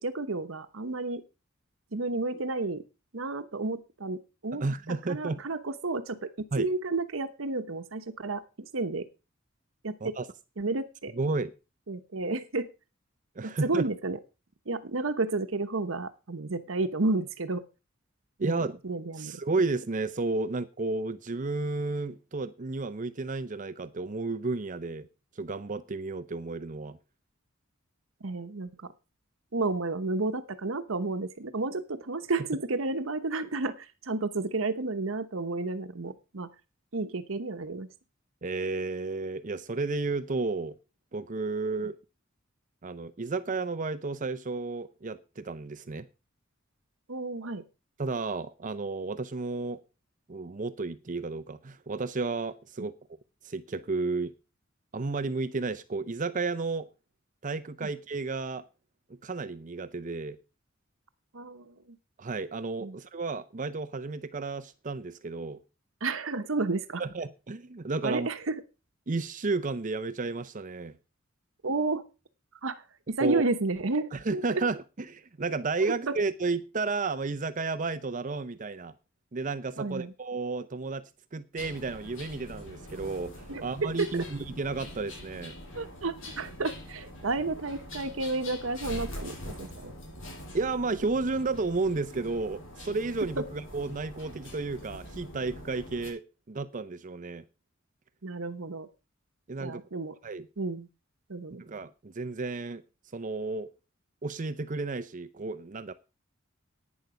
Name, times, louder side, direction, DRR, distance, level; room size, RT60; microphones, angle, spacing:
voice 1, 0.0-1.2 1.9-2.8 3.1-9.1 9.8-10.1 10.6-11.1 11.9-12.7 13.4-14.2 14.7-17.6 18.4-19.4 28.2-28.9 29.5-36.5 36.9-37.9 47.1-47.6 57.8-57.9 61.3-62.0 62.8-63.0 66.0-67.0 68.0-68.6 71.6-72.0 72.6-74.6 75.8-76.2 79.8-80.1 83.5-84.2 85.7-89.9 93.4-93.5 98.2-98.9 99.6-100.2 100.6-100.9 101.3-101.6, right 3 dB, 80° right, 1.1 m, -32 dB
voice 2, 4.5-5.4 6.5-6.7 10.0-10.3 11.2-11.5 13.4-13.9 18.4-18.8 19.2-25.1 25.4-27.0 38.4-40.8 41.1-42.0 42.8-46.1 48.0-49.8 50.3-52.9 53.4-54.3 54.9-56.9 57.4-58.7 59.1-60.4 62.2-65.6 67.0-68.3 69.1-71.0 73.2-73.4 74.1-78.9 79.3-85.5 90.5-97.4 99.5-99.8 100.2-100.5 101.6-102.8 103.1-103.7 104.2-105.9, right 3 dB, 40° right, 0.6 m, -32 dB
sound 1, 81.6-96.1, left 1 dB, 75° left, 6.8 m, -44 dB
11.0 x 9.4 x 5.0 m
head